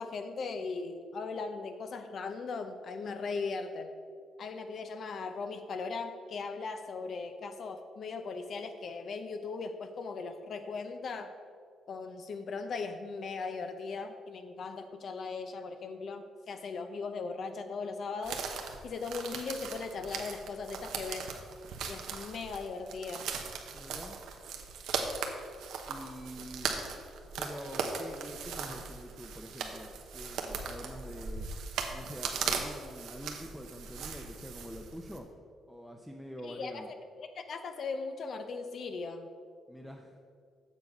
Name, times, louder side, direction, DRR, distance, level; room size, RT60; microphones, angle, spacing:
voice 1, 0.0-3.9 4.4-11.3 11.9-18.4 18.8-21.3 21.9-23.3 36.4-39.3, left 4 dB, 55° left, 7 dB, 0.5 m, -38 dB
sound 1, 18.2-35.2, right 5 dB, 80° right, 0.8 m, -39 dB
voice 2, 23.7-24.2 25.9-26.8 27.4-31.5 31.9-35.3 35.7-36.9 39.7-40.2, equal, 5° left, 1 dB, 0.6 m, -46 dB
7.3 x 6.3 x 5.3 m, 2.2 s
cardioid pair, 90°, 0 cm